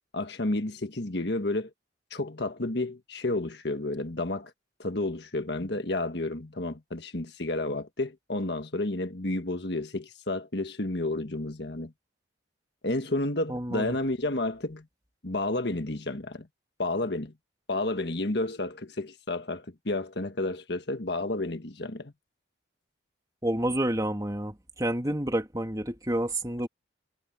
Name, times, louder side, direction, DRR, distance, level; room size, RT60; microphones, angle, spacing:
voice 1, 0.1-1.7 2.1-4.5 4.8-11.9 12.8-14.8 15.2-16.5 16.8-17.3 17.7-22.1, left 2 dB, 60° left, 1.5 m, -31 dB
voice 2, 13.5-14.0 23.4-26.7, right 1 dB, 20° right, 2.7 m, -29 dB
head